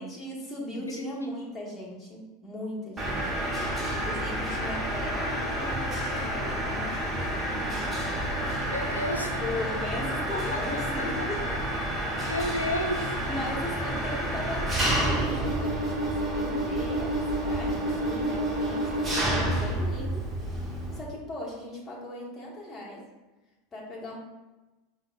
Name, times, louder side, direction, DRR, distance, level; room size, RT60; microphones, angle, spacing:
voice 1, 0.0-3.3 3.9-8.1 8.9-9.0 9.4-11.4 13.3-20.3 20.9-23.1 23.7-24.2, left 1 dB, 20° left, -3 dB, 1.0 m, -38 dB
Mechanisms, 3.0-21.0, right 1 dB, 15° right, 0.7 m, -29 dB
voice 2, 8.7-9.4 10.3-10.6 11.0-11.1 12.2-13.1, left 1 dB, 85° left, 1 dB, 0.4 m, -31 dB
5.1 x 2.0 x 2.3 m, 1.1 s
figure-of-eight pair, 80°, 0 cm